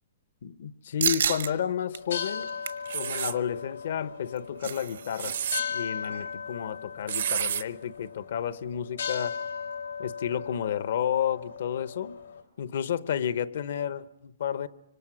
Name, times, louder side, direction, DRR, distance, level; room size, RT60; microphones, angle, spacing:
voice 1, 0.4-2.5 2.9-5.3 5.7-9.4 10.0-12.2 12.6-14.7, left 9 dB, 65° left, 0.8 m, -31 dB
sound 1, 1.0-1.5 1.9-2.0 2.4-2.9 4.1-5.3 5.6-5.7 6.0-6.3, right 8 dB, 85° right, 1.5 m, -30 dB
sound 2, 1.9-12.4, left 6 dB, 90° left, 2.6 m, -37 dB
sound 3, 2.9-3.4 5.0-5.6 7.1-7.6, right 9 dB, 70° right, 0.8 m, -30 dB
25.5 x 25.0 x 6.2 m
hypercardioid pair, 160°, 0 cm